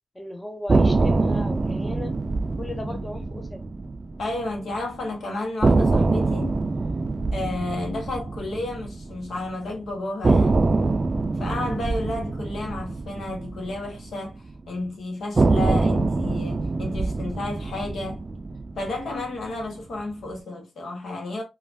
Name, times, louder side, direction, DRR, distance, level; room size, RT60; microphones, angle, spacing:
voice 1, 0.1-2.1 2.6-3.6, left 1 dB, 20° left, 0.8 m, -36 dB
sound 1, 0.7-4.8 5.0-5.1 5.6-9.7 10.2-14.6 15.3-19.7, right 3 dB, 45° right, 0.3 m, -24 dB
voice 2, 4.2-6.6 7.3-10.7 11.4-18.2 18.8-21.4, left 2 dB, 75° left, 0.9 m, -32 dB
3.2 x 2.3 x 2.5 m
supercardioid pair, 40°, 0 cm